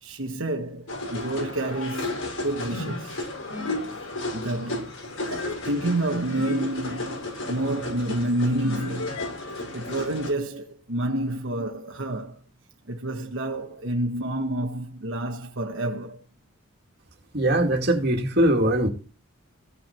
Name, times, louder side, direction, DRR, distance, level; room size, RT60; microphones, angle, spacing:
voice 1, 0.0-3.3 4.3-4.9 5.3-9.2 9.7-12.4 12.9-16.2, right 1 dB, 65° right, 1.4 m, -29 dB
sound 1, 0.9-10.3, left 2 dB, 90° left, 6.1 m, -33 dB
voice 2, 17.3-18.9, right 1 dB, 50° right, 2.3 m, -21 dB
15.5 x 6.0 x 4.5 m
head